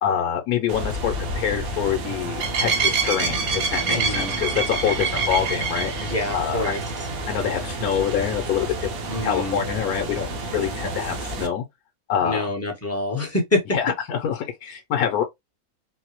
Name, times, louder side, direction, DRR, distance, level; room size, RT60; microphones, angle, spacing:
voice 1, 0.0-6.1 6.3-6.6 7.3-8.9 9.2-11.6 12.1-12.5 13.7-15.2, left 8 dB, 85° left, 1.2 m, -25 dB
sound 1, 0.7-11.5, right 3 dB, 70° right, 1.3 m, -27 dB
voice 2, 3.9-4.3 6.0-6.8 9.1-9.6 12.2-13.6, left 2 dB, 10° left, 0.9 m, -26 dB
4.0 x 2.0 x 2.9 m
omnidirectional pair, 1.6 m